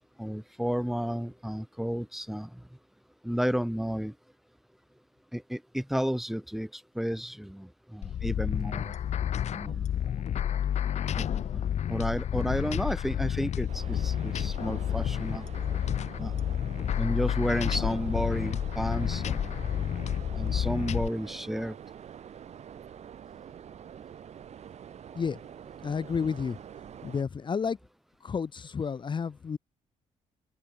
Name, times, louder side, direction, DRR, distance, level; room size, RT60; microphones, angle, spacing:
voice 1, 0.2-2.6 3.2-4.1 5.3-8.9 9.5-10.2 11.2-11.6 11.9-15.5 16.1-16.4 17.0-19.5 20.3-21.8, equal, ahead, 3.0 m, -32 dB
sound 1, 8.0-21.1, left 10 dB, 55° left, 1.1 m, -30 dB
sound 2, 13.7-27.2, right 9 dB, 55° right, 3.1 m, -46 dB
voice 2, 25.8-26.6 27.0-27.8 28.2-29.6, left 6 dB, 35° left, 2.0 m, -31 dB
cardioid pair, 125°, 14 cm